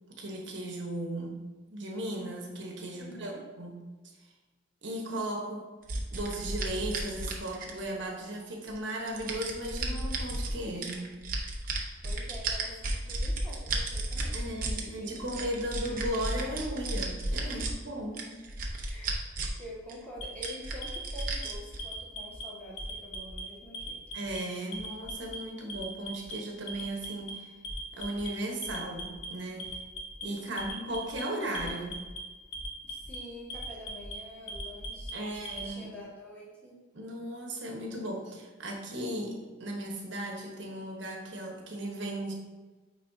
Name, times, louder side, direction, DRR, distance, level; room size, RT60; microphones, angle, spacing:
voice 1, 0.1-1.4 1.7-3.8 4.8-5.7 6.1-11.1 14.3-18.3 24.1-27.5 27.9-29.8 30.2-32.0 35.1-35.9 36.9-42.3, right 1 dB, 70° right, 0 dB, 1.2 m, -36 dB
voice 2, 3.0-3.4 12.0-15.5 17.4-17.7 18.9-19.3 19.6-24.0 30.5-30.8 32.8-36.8, equal, 10° left, -7 dB, 1.7 m, -47 dB
sound 1, 5.9-8.0 8.7-10.5 10.8-14.8 15.2-17.7 18.1-19.6 19.9-20.0 20.4-21.8, right 2 dB, 45° right, 0.8 m, -33 dB
Alarm, 20.2-21.5 21.8-22.4 22.8-23.4 23.7-24.4 24.7-25.4 25.7-26.3 26.7-27.3 27.6-28.3 28.6-29.3 29.6-30.2 30.6-31.2 31.5-32.2 32.5-33.2 33.5-34.1 34.5-35.7, left 1 dB, 80° left, 1.3 m, -40 dB
9.2 x 3.8 x 2.7 m, 1.3 s
head